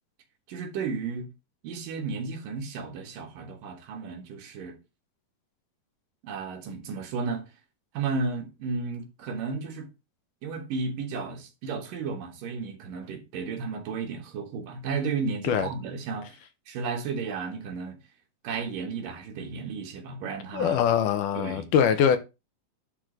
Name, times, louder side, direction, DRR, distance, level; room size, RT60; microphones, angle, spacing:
voice 1, 0.5-1.3 1.6-4.8 6.2-7.5 7.9-9.9 10.4-16.4 16.7-18.0 18.4-20.8 21.3-21.7, right 4 dB, 70° right, 3.2 m, -33 dB
voice 2, 20.5-22.2, left 8 dB, 70° left, 2.2 m, -23 dB
11.0 x 3.9 x 5.2 m
omnidirectional pair, 4.1 m